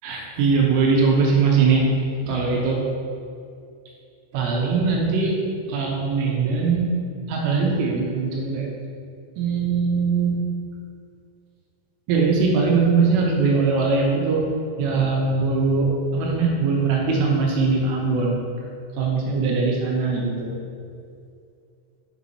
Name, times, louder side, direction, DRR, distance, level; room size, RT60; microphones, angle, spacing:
voice 1, 0.0-1.8 2.2-2.8 4.3-5.3 5.7-6.9 7.3-8.7 9.4-10.4 12.1-14.4 14.8-15.9 16.1-18.3 19.0-20.6, right 4 dB, 80° right, -1 dB, 3.3 m, -21 dB
8.7 x 7.0 x 3.0 m, 2.4 s
omnidirectional pair, 5.9 m